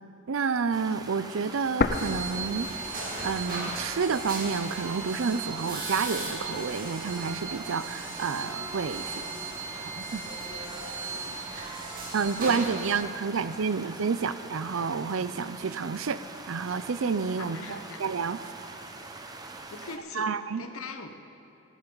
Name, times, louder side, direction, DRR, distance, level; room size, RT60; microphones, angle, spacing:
voice 1, 0.3-2.7 3.2-9.2 10.0-10.2 11.1-11.4 12.1-18.4 20.2-20.6, right 5 dB, 75° right, 14 dB, 0.5 m, -30 dB
sound 1, 0.7-20.0, right 2 dB, 20° right, 0.7 m, -43 dB
sound 2, 1.8-3.7 4.0-4.1 4.8-5.8, left 4 dB, 45° left, 0.5 m, -31 dB
sound 3, 1.9-12.9, right 3 dB, 40° right, 2.4 m, -36 dB
voice 2, 17.4-18.0 19.7-21.1, left 3 dB, 90° left, 6 dB, 1.0 m, -41 dB
16.0 x 15.0 x 4.0 m, 2.9 s
head